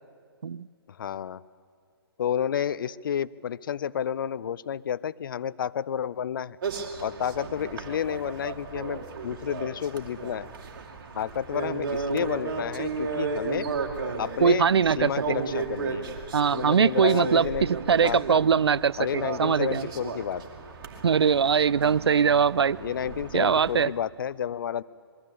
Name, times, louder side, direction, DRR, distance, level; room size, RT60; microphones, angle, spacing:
voice 1, 0.9-1.4 2.2-6.6 7.0-10.5 11.1-13.7 14.2-14.7 15.0-16.2 16.5-17.7 18.0-18.4 19.0-20.4 22.8-24.8, left 9 dB, 55° left, 0.5 m, -30 dB
sound 1, 6.6-23.9, right 4 dB, 55° right, 2.5 m, -35 dB
voice 2, 14.4-15.4 16.3-19.9 21.0-22.8 23.3-23.9, right 6 dB, 80° right, 0.4 m, -22 dB
21.5 x 14.0 x 8.7 m
figure-of-eight pair, 135°, 13 cm